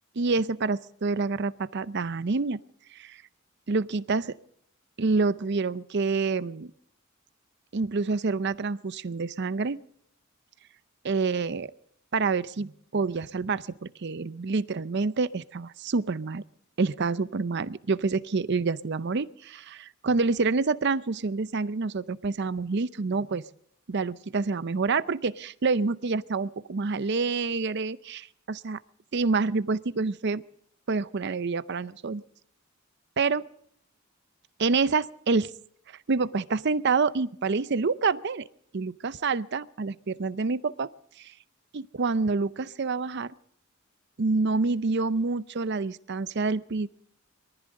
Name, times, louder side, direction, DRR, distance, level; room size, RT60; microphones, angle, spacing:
voice 1, 0.2-2.6 2.9-3.2 3.7-4.4 5.0-6.7 7.7-9.8 11.0-11.7 12.1-16.4 16.8-23.4 23.9-28.2 28.6-28.8 29.1-30.4 30.9-32.2 33.2-33.4 34.6-35.5 36.1-38.4 38.7-40.9 41.2-41.3 41.7-43.3 44.2-46.9, right 4 dB, 55° right, 16 dB, 0.6 m, -27 dB
23.0 x 14.5 x 3.8 m, 0.68 s
head